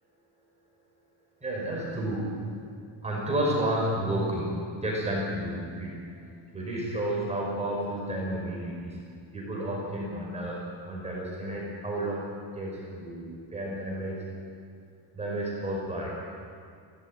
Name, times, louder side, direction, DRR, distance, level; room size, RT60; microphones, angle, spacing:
voice 1, 1.4-2.6 3.0-6.1 6.5-9.0 9.3-10.6 10.9-14.2 15.1-16.2, right 1 dB, 15° right, -4 dB, 5.4 m, -31 dB
23.5 x 17.5 x 9.2 m, 2.2 s
cardioid pair, 170°, 45 cm